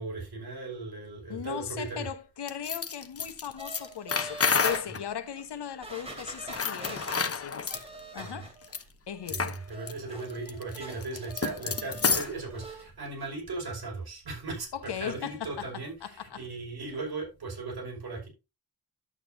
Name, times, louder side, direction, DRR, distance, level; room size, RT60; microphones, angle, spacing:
voice 1, 0.0-2.1 8.2-8.5 9.3-14.7 15.0-18.3, right 3 dB, 65° right, 5.5 m, -37 dB
voice 2, 1.3-7.7 8.1-8.5 9.1-9.6 14.7-16.4, left 9 dB, 80° left, 1.2 m, -38 dB
sound 1, 2.5-5.0 6.4-7.8 8.6-8.8 9.3-9.6 9.9-10.0 10.3-12.4, left 5 dB, 35° left, 0.9 m, -29 dB
sound 2, 3.6-4.8 5.4-5.5 5.8-8.8 9.1-12.2 12.5-12.8 13.2-13.3, right 2 dB, 15° right, 3.1 m, -44 dB
11.0 x 8.4 x 2.7 m
wide cardioid pair, 155°, 40 cm